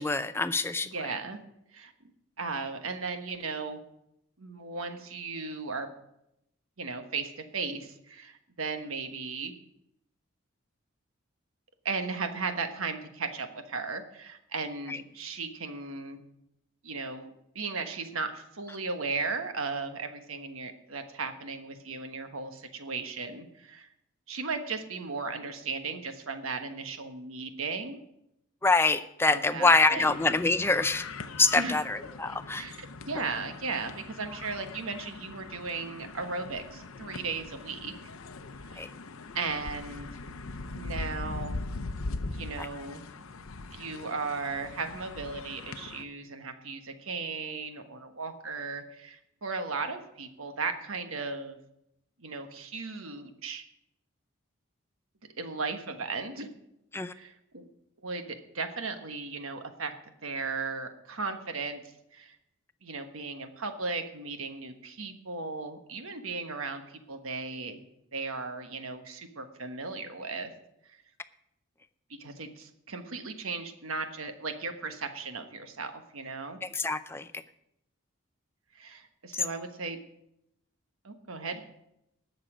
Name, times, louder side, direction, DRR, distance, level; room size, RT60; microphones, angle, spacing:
voice 1, 0.0-0.9 14.9-15.0 28.6-31.0 31.4-32.7 38.8-38.9 42.6-42.7 56.9-57.1 76.6-77.3 79.3-79.4, left 3 dB, 10° left, 12 dB, 0.4 m, -25 dB
voice 2, 0.8-1.4 1.7-1.9 2.4-3.8 4.4-5.9 6.8-9.5 11.8-16.2 16.8-23.9 24.3-28.0 29.2-30.0 31.5-31.8 32.5-37.9 38.7-38.9 39.3-40.1 40.7-41.6 42.3-43.0 43.7-51.6 52.2-53.6 55.4-56.5 57.1-57.7 58.0-59.9 60.2-61.8 62.1-62.4 62.8-67.8 68.1-70.5 72.1-76.6 78.7-80.0 81.0-81.6, right 4 dB, 85° right, 7 dB, 1.3 m, -36 dB
sound 1, 30.0-46.0, left 3 dB, 85° left, 0.7 m, -41 dB
19.0 x 6.8 x 5.0 m, 0.81 s
head